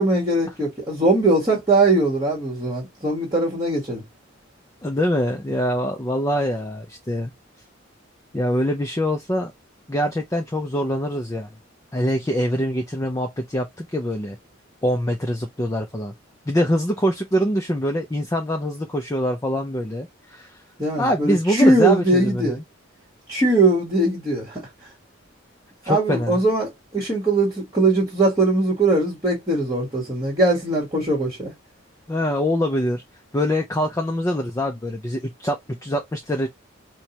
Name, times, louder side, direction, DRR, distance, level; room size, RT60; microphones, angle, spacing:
voice 1, 0.0-4.0 20.8-22.6 23.3-24.6 25.9-31.5, right 2 dB, 15° right, 1.3 m, -20 dB
voice 2, 4.8-7.3 8.3-9.5 9.9-11.5 11.9-14.4 14.8-16.1 16.5-20.6 21.0-22.6 25.8-26.4 32.1-33.0 33.3-36.5, equal, 15° left, 0.5 m, -24 dB
4.4 x 2.2 x 2.8 m
head